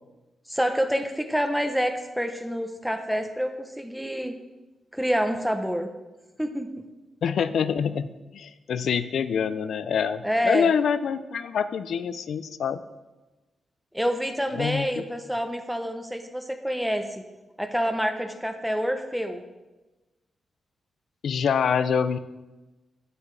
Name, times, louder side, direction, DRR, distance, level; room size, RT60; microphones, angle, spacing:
voice 1, 0.5-4.3 4.9-5.9 6.4-6.7 10.2-10.7 13.9-17.2 17.6-19.4, equal, ahead, 6 dB, 0.7 m, -27 dB
voice 2, 7.2-12.8 14.6-15.0 21.2-22.2, left 7 dB, 70° left, 13 dB, 0.4 m, -26 dB
8.8 x 8.2 x 3.3 m, 1.1 s
wide cardioid pair, 125°, 0 cm